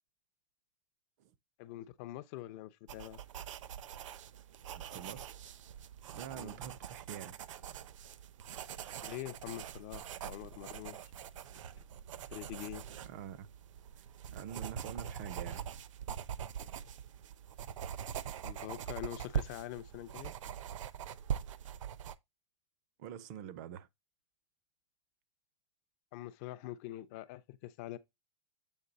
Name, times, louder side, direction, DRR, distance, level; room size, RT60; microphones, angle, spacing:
voice 1, 1.6-3.2 6.3-6.6 9.0-11.1 12.3-12.8 18.4-20.3 26.1-28.0, left 14 dB, 30° left, 0.5 m, -44 dB
sound 1, 2.9-22.2, right 9 dB, 75° right, 0.7 m, -43 dB
voice 2, 4.7-5.4 6.1-7.3 13.0-13.5 14.0-14.1 14.3-15.7 23.0-23.9, right 9 dB, 35° right, 0.5 m, -46 dB
8.0 x 3.2 x 3.9 m
supercardioid pair, 170°, 17 cm